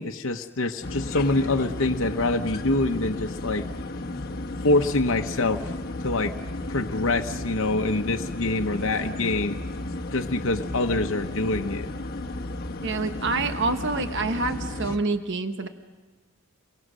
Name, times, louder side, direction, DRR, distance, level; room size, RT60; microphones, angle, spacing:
voice 1, 0.0-3.6 4.6-6.3 6.7-9.6 10.1-11.9, left 2 dB, 65° left, 3 dB, 1.0 m, -25 dB
sound 1, 0.8-15.0, left 2 dB, 45° left, 1.1 m, -33 dB
voice 2, 12.8-15.7, right 3 dB, 55° right, 8 dB, 1.1 m, -27 dB
29.5 x 23.0 x 6.3 m, 1.3 s
head